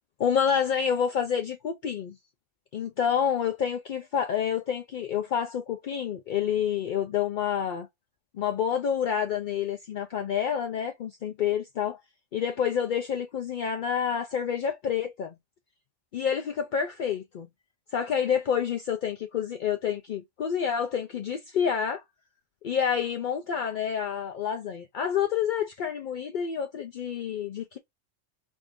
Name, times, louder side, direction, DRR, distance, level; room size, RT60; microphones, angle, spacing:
voice 1, 0.2-2.1 2.7-7.9 8.3-12.0 12.3-15.3 16.1-17.5 17.9-22.0 22.6-27.8, left 8 dB, 60° left, 0.5 m, -28 dB
3.5 x 2.6 x 3.4 m
omnidirectional pair, 1.3 m